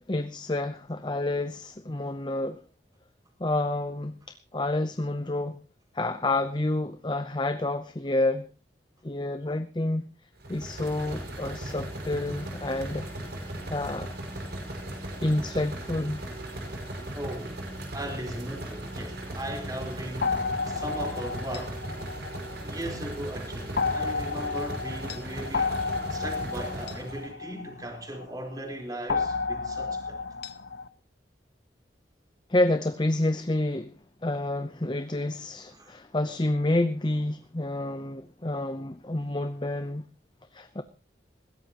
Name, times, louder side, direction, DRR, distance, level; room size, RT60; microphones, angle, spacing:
voice 1, 0.1-2.6 3.4-5.6 5.9-8.5 9.0-10.1 10.5-13.1 13.7-14.1 15.2-16.2 32.5-33.9 34.2-40.0 40.5-40.8, left 2 dB, 25° left, 0.7 m, -29 dB
sound 1, 10.4-27.3, right 1 dB, 65° right, 5.6 m, -37 dB
voice 2, 17.1-17.7 17.9-21.9 22.6-25.8 26.1-30.2 35.7-35.9, right 1 dB, 20° right, 4.2 m, -38 dB
sound 2, 20.2-23.0 23.8-28.3 29.1-30.9, left 4 dB, 65° left, 0.8 m, -31 dB
20.5 x 16.5 x 3.0 m
head